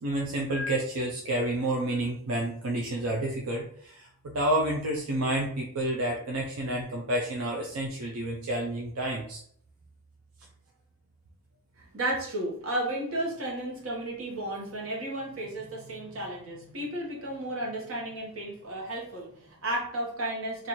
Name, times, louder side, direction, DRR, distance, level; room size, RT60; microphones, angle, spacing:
voice 1, 0.0-9.4, right 1 dB, 85° right, 0 dB, 0.5 m, -30 dB
voice 2, 11.8-20.7, right 1 dB, 70° right, -2 dB, 1.1 m, -33 dB
4.1 x 2.6 x 3.0 m, 0.63 s
head